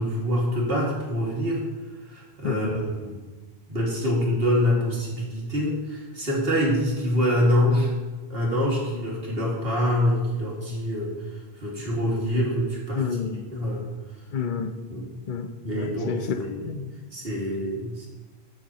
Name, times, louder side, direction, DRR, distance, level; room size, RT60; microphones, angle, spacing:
voice 1, 0.0-1.6 2.1-3.1 3.7-7.9 8.3-11.1 11.6-13.0 13.5-13.9 14.9-15.1 15.6-16.5 17.1-18.1, equal, 65° right, -3 dB, 2.4 m, -25 dB
voice 2, 2.4-2.8 12.9-13.5 14.3-14.7 15.3-16.9, left 6 dB, 55° left, 9 dB, 0.8 m, -30 dB
12.0 x 7.8 x 2.9 m, 1.3 s
omnidirectional pair, 1.1 m